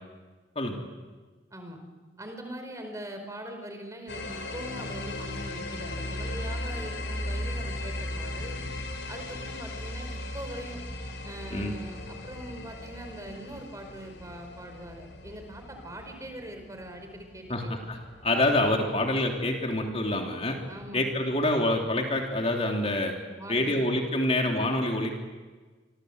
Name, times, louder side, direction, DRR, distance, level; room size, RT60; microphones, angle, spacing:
voice 1, 2.2-8.5 9.1-10.8 11.2-17.7 20.7-21.0 23.4-23.9, right 1 dB, 20° right, 5 dB, 4.9 m, -42 dB
sound 1, 4.1-19.5, left 1 dB, 85° left, 4.3 m, -37 dB
voice 2, 17.5-18.0 18.2-20.6 20.9-23.1 23.5-25.2, left 1 dB, 35° left, 1 dB, 3.3 m, -26 dB
29.0 x 25.0 x 8.1 m, 1.4 s
head